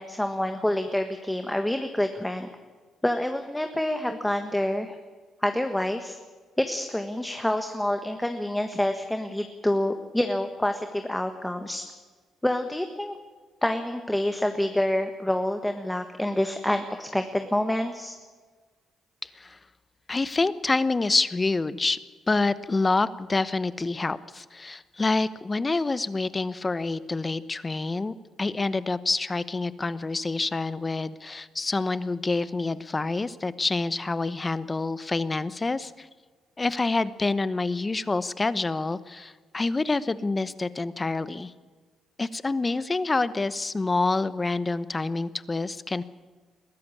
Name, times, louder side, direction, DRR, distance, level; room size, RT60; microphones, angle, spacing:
voice 1, 0.0-2.5 3.0-4.9 5.4-6.2 6.6-11.8 12.4-13.2 13.6-18.2, left 1 dB, 5° left, 6 dB, 1.5 m, -27 dB
voice 2, 19.2-19.6 20.1-22.0 22.3-36.1 36.6-41.5 42.2-46.0, left 3 dB, 25° left, 15 dB, 1.0 m, -27 dB
22.0 x 14.5 x 8.6 m, 1.4 s
cardioid pair, 90°, 0 cm